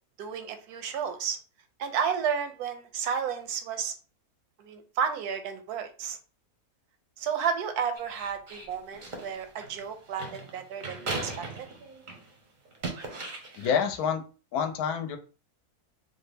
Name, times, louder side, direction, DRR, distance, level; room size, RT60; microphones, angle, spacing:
voice 1, 0.2-1.4 1.8-3.9 4.6-6.2 7.2-11.7, right 7 dB, 80° right, 8 dB, 1.1 m, -32 dB
sound 1, 7.9-12.3 12.6-14.0, right 3 dB, 45° right, 0.6 m, -38 dB
voice 2, 13.6-14.2 14.5-15.2, left 7 dB, 75° left, 7 dB, 1.0 m, -27 dB
3.3 x 2.1 x 3.3 m, 0.35 s
omnidirectional pair, 1.6 m